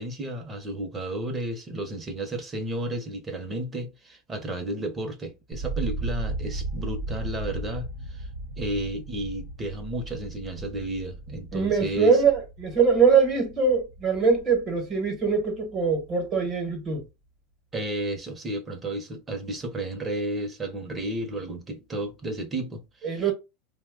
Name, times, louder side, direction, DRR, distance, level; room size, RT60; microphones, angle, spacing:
voice 1, 0.0-8.3 8.6-12.2 17.7-23.2, right 1 dB, 20° right, 0.6 m, -32 dB
sound 1, 5.5-15.5 15.8-16.5, right 2 dB, 85° right, 1.0 m, -36 dB
voice 2, 11.5-17.0 23.0-23.3, right 5 dB, 35° right, 0.9 m, -22 dB
2.8 x 2.1 x 3.5 m
supercardioid pair, 145°, 0 cm